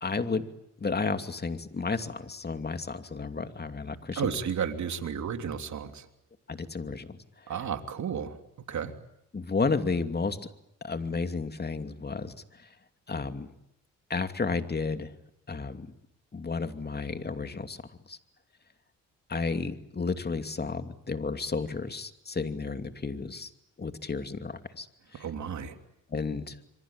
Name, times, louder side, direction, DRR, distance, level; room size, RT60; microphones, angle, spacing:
voice 1, 0.0-0.5 0.8-4.3 6.5-7.2 9.3-10.4 10.8-12.3 13.1-13.5 14.1-15.1 15.5-15.9 16.3-17.8 18.1-18.2 19.3-23.5 23.8-24.9 25.1-25.2 26.1-26.6, left 4 dB, 30° left, 8 dB, 2.7 m, -32 dB
voice 2, 4.2-6.1 7.5-8.4 8.7-8.9 25.2-25.8, right 7 dB, 65° right, 6 dB, 3.3 m, -32 dB
27.0 x 24.0 x 8.8 m, 0.83 s
cardioid pair, 70°, 32 cm